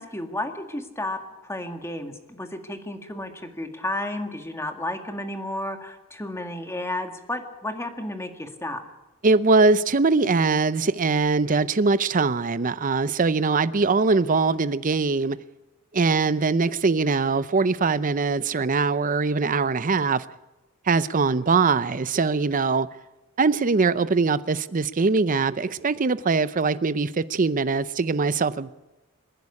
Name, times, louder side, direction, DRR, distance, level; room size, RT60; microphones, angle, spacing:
voice 1, 0.0-8.8, left 1 dB, 15° left, 1.9 m, -32 dB
voice 2, 9.2-15.4 15.9-20.2 20.9-22.9 23.4-28.7, right 4 dB, 40° right, 0.6 m, -22 dB
27.0 x 11.0 x 9.8 m
head